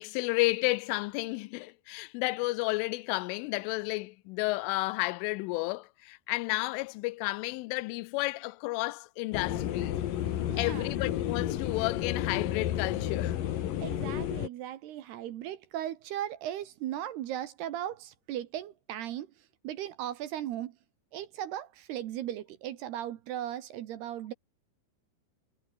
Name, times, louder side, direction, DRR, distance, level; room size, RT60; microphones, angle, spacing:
voice 1, 0.0-10.0 10.6-13.4, left 22 dB, 85° left, 3.1 m, -32 dB
sound 1, 9.3-14.5, left 11 dB, 60° left, 2.5 m, -31 dB
voice 2, 10.5-10.9 13.8-19.3 19.6-20.8 21.1-24.3, right 12 dB, 65° right, 2.9 m, -37 dB
omnidirectional pair, 5.7 m